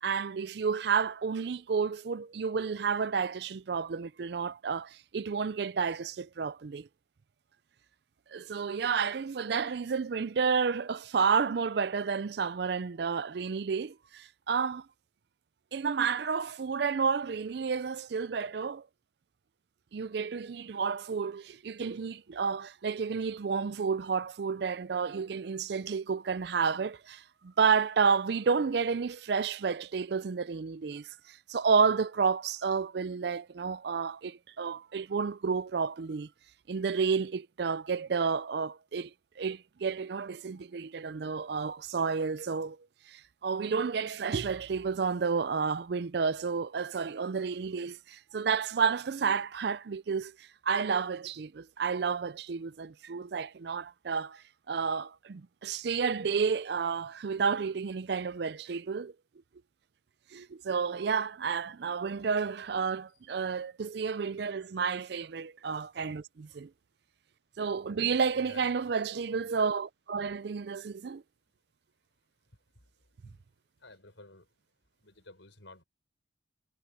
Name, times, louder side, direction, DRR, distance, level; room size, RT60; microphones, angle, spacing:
voice 1, 0.0-6.9 8.3-14.9 15.7-18.9 19.9-36.3 36.7-39.1 39.4-42.8 43.1-59.1 60.3-66.7 67.6-71.2, right 5 dB, 60° right, 0.4 m, -31 dB
voice 2, 68.3-68.9 72.8-72.9 73.2-73.4 73.8-74.5 75.0-75.8, left 2 dB, 80° left, 5.7 m, -53 dB
head